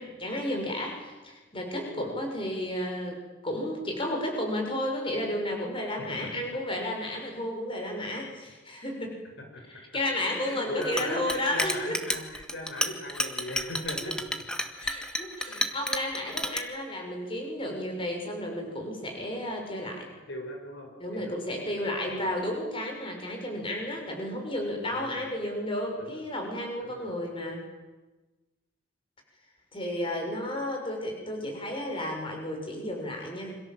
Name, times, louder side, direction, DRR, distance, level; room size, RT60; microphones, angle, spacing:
voice 1, 0.0-9.2 9.7-12.0 14.0-14.1 14.8-20.0 21.0-27.6 29.7-33.6, left 1 dB, 25° left, 2 dB, 6.5 m, -32 dB
voice 2, 1.8-2.1 9.4-9.6 10.3-14.2 15.5-15.8 16.3-16.5 20.3-21.8 22.1-22.3 24.9-25.2 26.0-26.3 26.8-27.1, left 1 dB, 60° left, 2 dB, 5.8 m, -39 dB
Chink clink, 10.8-16.6, equal, 5° left, 1.6 m, -31 dB
28.0 x 26.0 x 7.7 m, 1.2 s
head